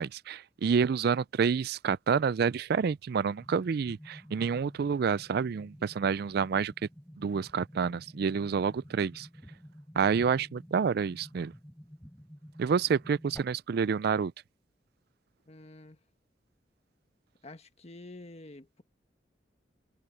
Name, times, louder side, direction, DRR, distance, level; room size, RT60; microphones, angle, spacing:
voice 1, 0.0-6.7 7.2-9.3 10.0-11.5 12.6-14.3, right 6 dB, 60° right, 0.4 m, -28 dB
sound 1, 3.4-13.4, equal, 10° left, 5.5 m, -51 dB
voice 2, 15.5-16.0 17.4-18.8, left 2 dB, 35° left, 1.5 m, -48 dB
head